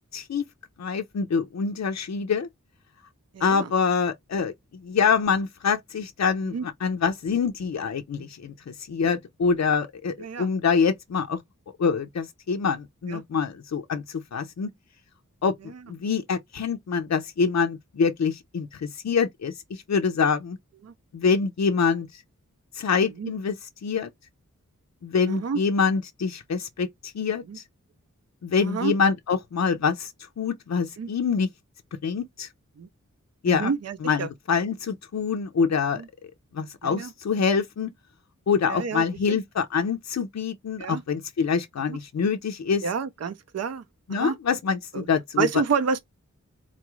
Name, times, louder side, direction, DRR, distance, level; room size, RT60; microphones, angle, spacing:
voice 1, 0.1-0.4 0.8-2.5 3.4-4.5 4.8-11.4 11.8-14.7 15.4-15.5 15.9-20.6 21.1-22.2 22.7-24.1 25.0-27.6 28.4-30.1 30.4-31.5 32.0-32.5 33.4-33.7 34.0-36.0 36.5-37.9 38.5-42.9 44.1-45.5, left 5 dB, 60° left, 0.5 m, -25 dB
voice 2, 3.3-3.7 6.5-6.6 10.2-10.5 13.1-13.2 20.8-20.9 23.2-23.3 25.3-25.6 27.5-27.6 28.6-28.9 31.0-31.1 32.8-32.9 33.5-34.3 36.0-36.1 36.8-37.1 38.7-39.4 40.8-41.0 41.9-42.0 42.8-43.8 44.1-44.4 44.9-45.0 45.4-46.0, right 5 dB, 55° right, 0.5 m, -29 dB
3.9 x 2.3 x 3.0 m
wide cardioid pair, 75°, 31 cm